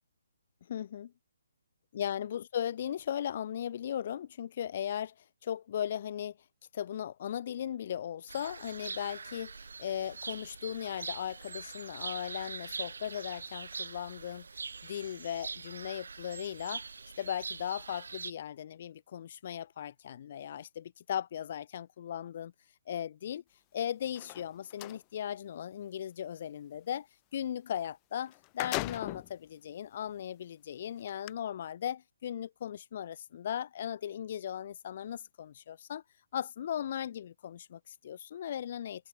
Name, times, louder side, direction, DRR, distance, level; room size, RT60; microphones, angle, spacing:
voice 1, 0.7-1.1 1.9-5.1 5.4-6.4 6.7-14.5 14.8-16.9 17.2-22.5 22.9-23.4 23.7-27.1 27.3-36.0 36.3-39.1, left 10 dB, 45° left, 2.6 m, -37 dB
sound 1, 8.3-18.3, right 4 dB, 65° right, 0.9 m, -43 dB
sound 2, 24.0-25.0 27.8-27.9 28.3-29.3 30.0-30.1 31.1-31.3, left 38 dB, 25° left, 0.8 m, -38 dB
figure-of-eight pair, 135°, 0 cm